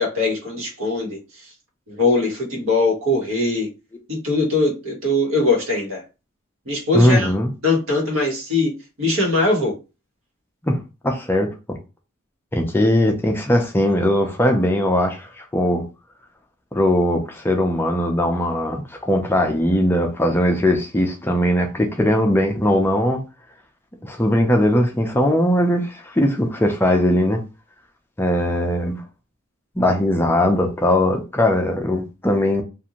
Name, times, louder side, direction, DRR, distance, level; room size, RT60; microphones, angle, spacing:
voice 1, 0.0-1.5 1.9-3.7 4.1-6.0 6.6-7.3 7.6-8.7 9.0-9.7, left 2 dB, 85° right, 1.3 m, -21 dB
voice 2, 6.9-7.5 10.6-10.8 11.0-11.8 12.5-15.8 16.7-23.2 24.0-27.4 28.2-29.0 29.8-32.6, left 1 dB, 10° left, 0.4 m, -19 dB
2.6 x 2.5 x 2.9 m
head